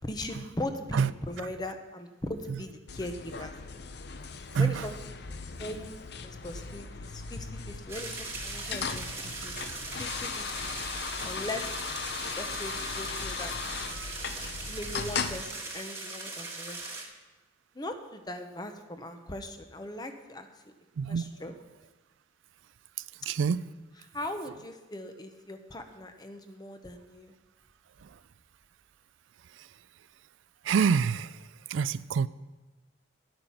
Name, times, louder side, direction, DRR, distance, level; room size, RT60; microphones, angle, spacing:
voice 1, 0.1-3.5 4.6-5.0 5.6-9.5 10.0-10.7 11.2-11.7 12.4-13.5 14.6-16.8 17.7-20.5 21.1-21.5 24.1-27.3, left 1 dB, 20° left, 7 dB, 0.8 m, -39 dB
sound 1, 2.9-15.4, left 5 dB, 55° left, 0.6 m, -38 dB
sound 2, 7.9-17.0, right 3 dB, 15° right, 1.4 m, -39 dB
voice 2, 21.0-21.3 23.3-23.6 30.7-31.3 31.7-32.3, right 6 dB, 85° right, 16 dB, 0.4 m, -26 dB
10.5 x 8.8 x 5.7 m, 1.2 s
head